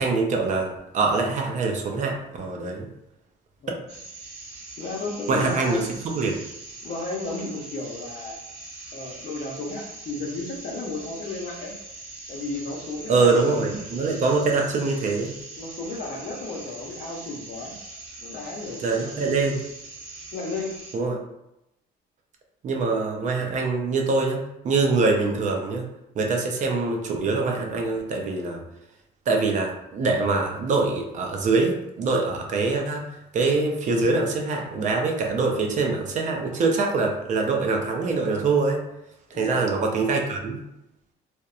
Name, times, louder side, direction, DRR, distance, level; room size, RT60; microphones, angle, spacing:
voice 1, 0.0-2.9 5.3-6.4 13.1-15.4 18.8-19.6 20.9-21.2 22.6-25.9 26.2-28.6 29.3-38.8 39.3-40.6, right 3 dB, 45° right, 1 dB, 0.5 m, -24 dB
sound 1, 3.9-20.9, right 2 dB, 80° right, 0.8 m, -42 dB
voice 2, 4.8-5.9 6.8-8.4 8.9-11.8 12.3-13.5 15.6-17.7 18.2-19.3 20.3-20.7 39.3-39.6, left 3 dB, 55° left, 0 dB, 0.7 m, -33 dB
2.8 x 2.1 x 2.4 m, 0.86 s
cardioid pair, 110°, 17 cm